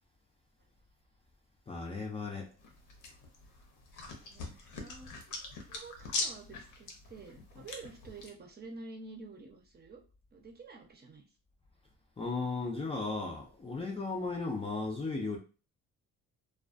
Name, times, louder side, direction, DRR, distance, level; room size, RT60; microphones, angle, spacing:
voice 1, 1.7-2.5 12.2-15.4, left 3 dB, 20° left, 0.5 m, -35 dB
sound 1, 2.6-8.3, left 3 dB, 85° left, 0.7 m, -42 dB
voice 2, 4.1-5.1 5.4-10.0 10.3-11.2, right 3 dB, 30° right, 0.7 m, -49 dB
2.3 x 2.2 x 2.5 m
cardioid pair, 90°, 30 cm